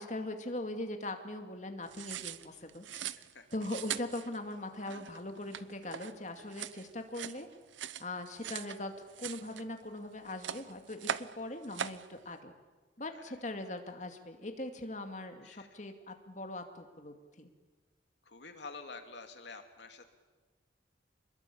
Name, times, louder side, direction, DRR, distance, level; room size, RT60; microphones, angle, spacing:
voice 1, 0.0-2.9 3.5-7.5 8.0-12.5 13.0-17.5, left 1 dB, 40° left, 5 dB, 2.3 m, -41 dB
sound 1, 1.8-8.8 9.1-10.0 10.3-11.4 11.6-12.1, right 8 dB, 80° right, 0.8 m, -41 dB
voice 2, 2.9-3.5 13.1-13.2 15.4-15.7 18.2-20.1, left 4 dB, 65° left, 6 dB, 2.6 m, -49 dB
26.0 x 21.5 x 8.6 m, 1.3 s
head